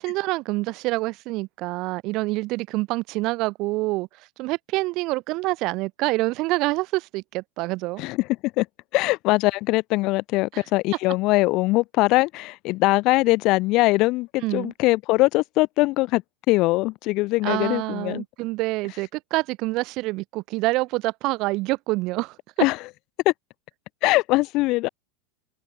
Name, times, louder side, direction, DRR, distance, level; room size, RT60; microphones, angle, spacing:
voice 1, 0.0-4.1 4.4-8.0 10.5-10.6 14.4-14.7 17.4-22.7, right 21 dB, 45° right, 2.9 m, -26 dB
voice 2, 8.9-16.2 16.5-18.2 22.6-22.8 23.3-23.4 24.0-24.9, left 21 dB, 45° left, 2.5 m, -21 dB
figure-of-eight pair, 80°, 0 cm